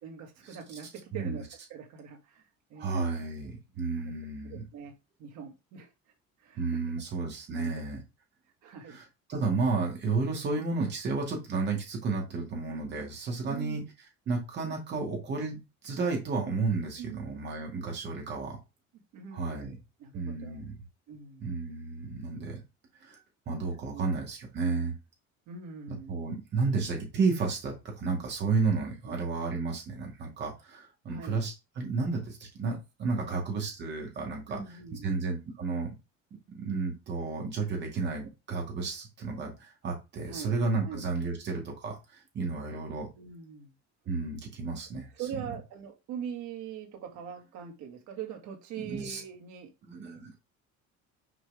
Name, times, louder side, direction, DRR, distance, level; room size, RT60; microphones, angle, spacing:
voice 1, 0.0-2.4 2.7-3.0 4.0-4.1 4.4-4.9 5.2-5.9 6.4-6.8 7.5-7.8 8.6-9.0 13.5-13.9 17.0-17.4 19.1-19.7 20.0-20.6 21.1-21.5 23.9-24.1 25.5-26.2 29.1-29.2 31.1-31.4 33.1-33.4 34.5-35.3 38.2-38.3 40.3-40.6 40.8-41.0 43.2-43.7 45.1-49.7, right 7 dB, 70° right, 3 dB, 2.1 m, -42 dB
voice 2, 1.1-1.4 2.8-4.6 6.6-8.0 8.9-13.8 14.3-15.6 15.8-18.6 19.3-19.8 20.1-20.8 21.4-22.6 23.1-23.2 23.5-24.9 26.1-34.6 35.0-35.9 36.6-42.0 42.3-43.1 44.1-45.1 48.8-49.2 49.8-50.4, right 4 dB, 35° right, 1 dB, 2.2 m, -32 dB
6.0 x 4.6 x 3.5 m, 0.25 s
cardioid pair, 175°, 30 cm